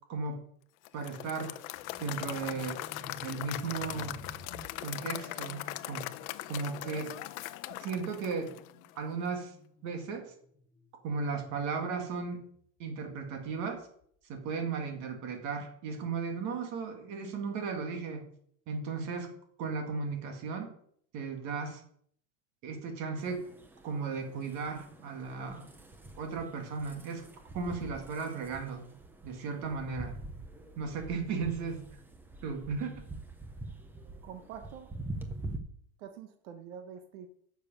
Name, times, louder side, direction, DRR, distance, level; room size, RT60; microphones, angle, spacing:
voice 1, 0.1-0.5 0.9-1.5 2.0-2.8 3.2-4.2 4.8-6.1 6.5-7.1 7.8-8.5 9.0-9.5 9.8-10.3 11.0-12.5 12.8-13.9 14.2-18.2 18.7-19.3 19.6-20.7 21.1-21.8 22.6-23.5 23.8-25.7 26.2-27.3 27.5-28.8 29.2-30.1 30.8-31.9 32.4-32.9, right 5 dB, 45° right, 3 dB, 2.1 m, -35 dB
Applause / Crowd, 0.8-9.0, left 17 dB, 80° left, 0.7 m, -40 dB
sound 1, 1.7-11.7 12.0-12.3 13.0-14.0, left 3 dB, 20° left, 2.6 m, -53 dB
sound 2, 23.2-35.6, right 2 dB, 5° right, 0.4 m, -45 dB
voice 2, 34.2-34.9 36.0-37.3, right 8 dB, 85° right, 7 dB, 1.3 m, -46 dB
9.6 x 6.9 x 5.3 m, 0.64 s
cardioid pair, 165°, 41 cm